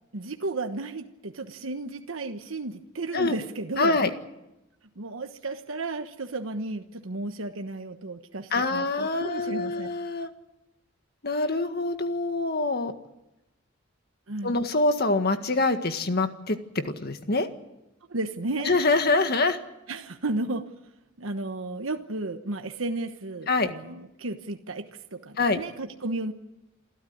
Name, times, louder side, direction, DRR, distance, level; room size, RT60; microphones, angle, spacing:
voice 1, 0.1-4.0 5.0-9.9 14.3-14.6 18.1-18.8 19.9-20.7 21.2-26.3, right 2 dB, 90° right, 6 dB, 1.2 m, -33 dB
voice 2, 3.8-4.1 8.5-10.3 11.2-12.9 14.4-16.6 16.8-17.5 18.6-19.6 23.5-23.7 25.4-25.6, left 3 dB, 50° left, 8 dB, 1.8 m, -25 dB
28.0 x 13.0 x 9.5 m, 0.93 s
head